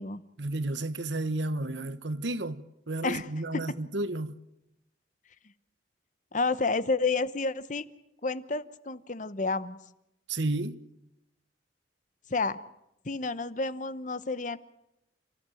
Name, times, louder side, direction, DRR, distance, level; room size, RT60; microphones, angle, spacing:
voice 1, 0.4-4.3 10.3-10.8, right 2 dB, 80° right, 1.2 m, -32 dB
voice 2, 6.3-7.9 8.2-9.8 12.3-12.6 13.0-14.6, left 3 dB, 45° left, 0.9 m, -30 dB
29.5 x 14.5 x 9.2 m
head